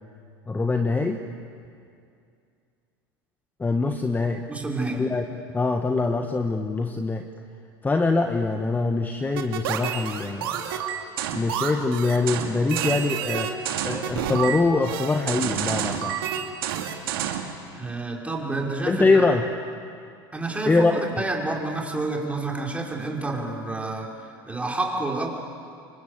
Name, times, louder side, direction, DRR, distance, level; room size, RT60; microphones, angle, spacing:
voice 1, 0.5-1.2 3.6-4.4 4.9-5.2 5.5-7.3 7.8-10.7 11.3-13.5 13.8-16.2 18.9-19.4 20.7-20.9, left 3 dB, 15° left, 5 dB, 1.5 m, -23 dB
voice 2, 4.5-5.0 17.7-19.2 20.3-24.1 24.5-25.3, right 2 dB, 10° right, -1 dB, 5.2 m, -29 dB
sound 1, 9.4-17.5, right 9 dB, 80° right, 2.8 m, -29 dB
27.5 x 24.5 x 8.2 m, 2.4 s
hypercardioid pair, 95°, 12 cm